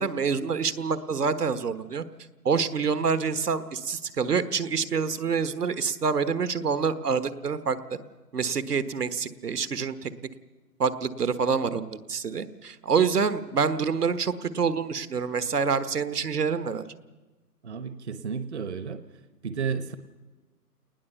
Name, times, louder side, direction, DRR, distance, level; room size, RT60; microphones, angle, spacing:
voice 1, 0.0-2.0 2.4-7.8 8.3-10.1 10.8-16.8, right 5 dB, 70° right, 12 dB, 1.4 m, -27 dB
voice 2, 17.6-19.0 19.4-20.0, right 6 dB, 45° right, 11 dB, 1.0 m, -32 dB
29.0 x 19.5 x 6.9 m, 1.2 s
figure-of-eight pair, 155°, 49 cm